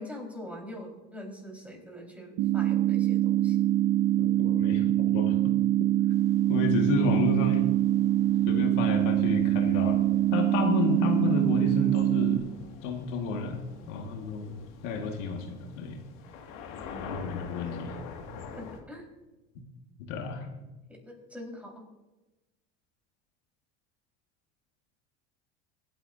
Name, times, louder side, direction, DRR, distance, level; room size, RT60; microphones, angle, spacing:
voice 1, 0.0-3.6 16.9-17.2 18.6-19.1 20.9-21.8, left 1 dB, 5° right, -1 dB, 4.6 m, -43 dB
sound 1, 2.4-12.4, right 14 dB, 50° right, 0.8 m, -24 dB
voice 2, 4.2-5.5 6.5-7.7 8.5-10.0 10.3-12.5 12.8-13.6 13.9-14.6 14.8-16.0 17.0-17.9 20.1-20.4, left 4 dB, 80° left, 2 dB, 2.0 m, -31 dB
sound 2, 6.1-18.8, left 5 dB, 65° left, 2.2 m, -47 dB
25.0 x 9.0 x 2.8 m, 1.1 s
hypercardioid pair, 90°, 37 cm